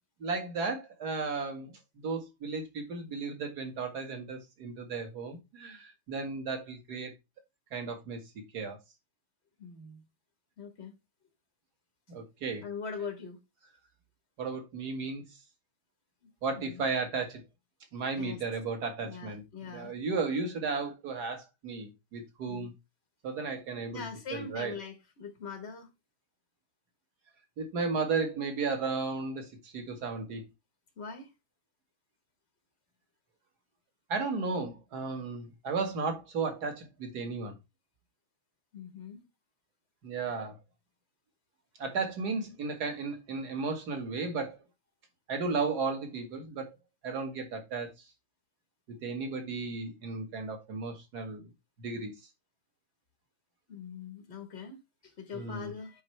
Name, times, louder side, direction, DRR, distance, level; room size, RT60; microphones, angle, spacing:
voice 1, 0.2-7.1 7.7-8.2 8.5-8.8 12.1-12.6 14.4-15.2 16.4-17.4 17.9-22.7 23.2-24.0 24.3-24.7 27.6-30.4 34.1-37.5 40.0-40.6 41.8-44.6 45.3-46.8 47.0-47.9 49.0-51.5 51.8-52.1 55.3-55.7, right 4 dB, 50° right, 2.1 m, -34 dB
voice 2, 9.6-10.0 10.6-10.9 12.6-13.4 16.6-16.8 18.2-18.4 19.0-19.9 22.5-22.7 23.9-25.9 31.0-31.3 38.7-39.2 53.7-56.0, left 5 dB, 40° left, 1.1 m, -42 dB
8.0 x 5.4 x 3.2 m
omnidirectional pair, 2.4 m